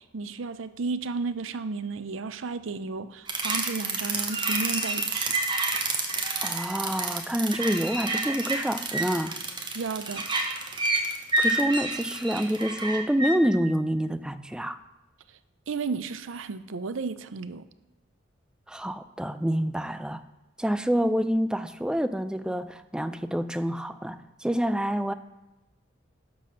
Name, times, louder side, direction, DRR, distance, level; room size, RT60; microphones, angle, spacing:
voice 1, 0.0-5.3 9.7-10.3 15.7-17.6, right 4 dB, 85° right, 12 dB, 0.6 m, -33 dB
sound 1, 3.3-13.4, right 3 dB, 25° right, 1.1 m, -29 dB
voice 2, 6.4-9.4 11.4-14.8 18.7-20.2 20.6-25.1, equal, 5° right, 11 dB, 0.3 m, -27 dB
11.5 x 4.3 x 6.5 m, 1.0 s
head